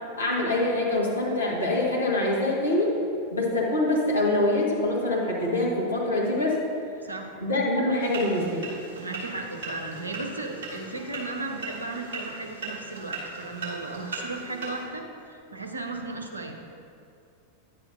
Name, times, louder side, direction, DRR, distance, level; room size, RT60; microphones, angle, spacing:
voice 1, 0.2-2.9 3.3-6.6 7.4-8.6, left 2 dB, 75° left, -4 dB, 1.5 m, -25 dB
voice 2, 7.0-7.3 9.0-16.7, right 3 dB, 80° right, 2 dB, 0.8 m, -35 dB
sound 1, 8.0-14.8, right 3 dB, 55° right, 2.0 m, -38 dB
10.5 x 8.2 x 2.7 m, 2.6 s
figure-of-eight pair, 90°, 0 cm